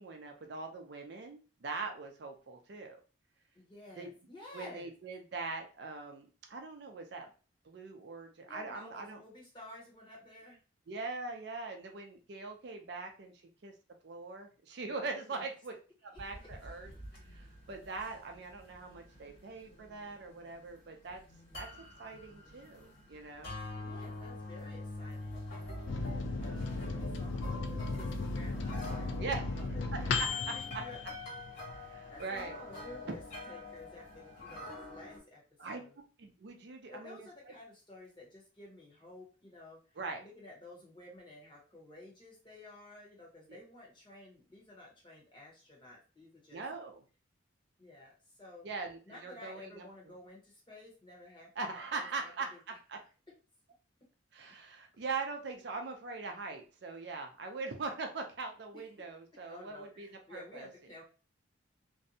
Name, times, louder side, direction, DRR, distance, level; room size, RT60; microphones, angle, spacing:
voice 1, 0.0-3.0 4.0-4.1 4.5-7.3 7.6-9.2 10.9-13.3 13.6-13.7 14.0-15.7 16.0-16.9 17.3-21.2 21.5-21.7 22.0-23.5 29.2-29.5 29.9-30.4 30.7-30.8 31.9-32.6 35.6-35.8 36.2-37.3 40.0-40.3 43.5-43.6 46.5-47.0 48.6-49.8 51.6-53.0 54.3-60.7, right 4 dB, 55° right, 4 dB, 0.4 m, -41 dB
voice 2, 3.5-4.9 8.5-10.6 15.2-15.5 16.4-16.5 23.8-25.4 26.0-31.0 31.7-33.2 33.5-35.4 35.7-36.0 36.7-46.6 47.8-48.7 49.1-52.6 54.9-55.0 58.7-58.8 59.5-61.0, left 2 dB, 25° left, -3 dB, 0.9 m, -53 dB
sound 1, 16.2-35.2, left 2 dB, 50° left, 1.5 m, -46 dB
Microwave oven, 25.9-32.0 32.4-32.5 32.7-33.3, left 3 dB, 65° left, 0.3 m, -36 dB
2.6 x 2.1 x 2.6 m, 0.35 s
head